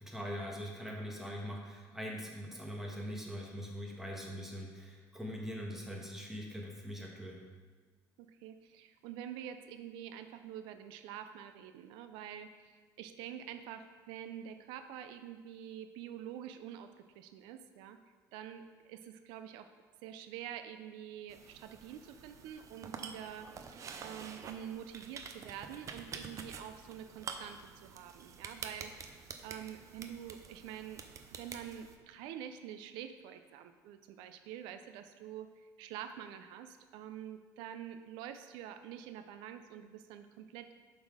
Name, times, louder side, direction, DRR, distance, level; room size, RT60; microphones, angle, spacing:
voice 1, 0.0-7.4, equal, 5° right, -1 dB, 1.4 m, -42 dB
voice 2, 8.2-12.7 13.0-16.9 17.2-18.0 18.3-19.7 20.0-31.0 31.4-40.7, right 10 dB, 85° right, 9 dB, 0.4 m, -47 dB
sound 1, 21.3-32.0, right 6 dB, 45° right, 0.6 m, -48 dB
7.1 x 4.1 x 4.9 m, 1.4 s
cardioid pair, 105°, 8 cm